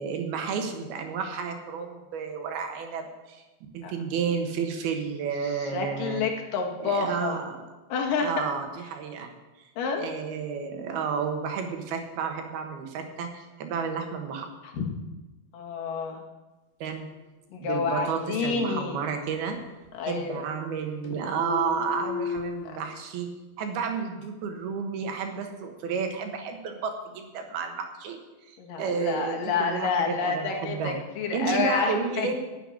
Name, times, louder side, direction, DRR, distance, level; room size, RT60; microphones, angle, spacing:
voice 1, 0.0-3.4 3.7-6.2 6.8-7.6 8.2-9.3 9.6-14.5 16.8-17.1 17.6-19.6 20.0-23.3 23.6-28.2 28.5-31.0 31.3-32.3, right 6 dB, 90° right, 5 dB, 3.5 m, -31 dB
voice 2, 5.4-7.4 7.9-8.3 9.8-10.2 14.7-14.8 15.5-16.2 17.5-19.0 19.9-20.4 28.6-32.3, left 5 dB, 65° left, 1 dB, 3.3 m, -29 dB
sound 1, 18.6-19.5 19.8-20.8 21.0-22.7, left 6 dB, 80° left, 3.4 m, -36 dB
10.5 x 8.1 x 9.8 m, 1.1 s
omnidirectional pair, 4.3 m